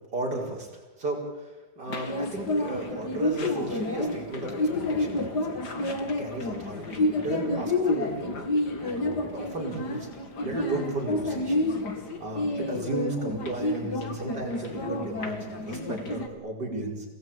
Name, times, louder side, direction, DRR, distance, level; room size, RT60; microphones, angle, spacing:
voice 1, 0.1-0.7 1.0-8.5 8.8-10.1 10.4-11.7 12.2-17.1, right 2 dB, 65° right, -1 dB, 5.7 m, -34 dB
sound 1, 1.9-16.3, left 2 dB, 65° left, 3.0 m, -29 dB
29.0 x 18.0 x 9.1 m, 1.2 s
omnidirectional pair, 1.9 m